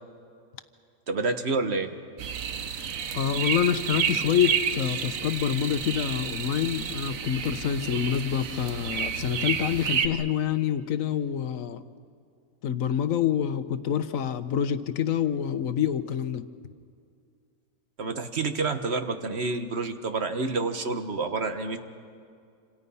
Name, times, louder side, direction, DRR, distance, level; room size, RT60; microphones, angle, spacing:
voice 1, 1.1-2.0 18.0-21.8, right 3 dB, 55° right, 8 dB, 1.5 m, -28 dB
sound 1, 2.2-10.1, right 7 dB, 85° right, 1.4 m, -30 dB
voice 2, 3.1-11.8 12.6-16.4, left 9 dB, 85° left, 11 dB, 1.3 m, -27 dB
27.5 x 26.5 x 5.6 m, 2.3 s
omnidirectional pair, 1.4 m